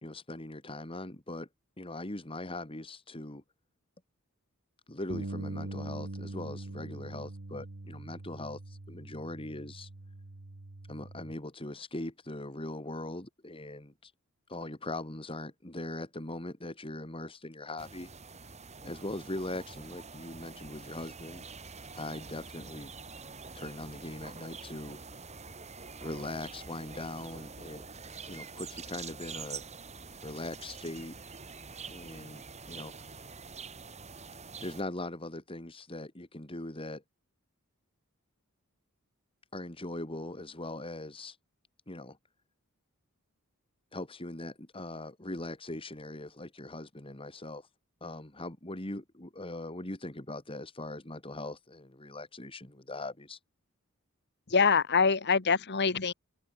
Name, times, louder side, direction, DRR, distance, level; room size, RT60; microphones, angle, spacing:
voice 1, 0.0-1.5 1.8-3.4 4.9-9.9 10.9-14.1 14.5-18.1 18.8-21.4 22.0-22.9 23.5-25.0 26.0-27.8 28.3-29.6 30.2-31.2 31.9-32.4 32.7-33.3 34.6-37.0 39.5-41.4 41.9-42.2 43.9-47.7 48.0-53.4, left 2 dB, 25° left, 2.5 m, -40 dB
Bass guitar, 5.1-11.3, right 2 dB, 70° right, 1.4 m, -42 dB
sound 1, 17.8-34.8, right 5 dB, 30° right, 5.6 m, -46 dB
voice 2, 54.5-56.1, left 5 dB, 50° left, 1.4 m, -25 dB
head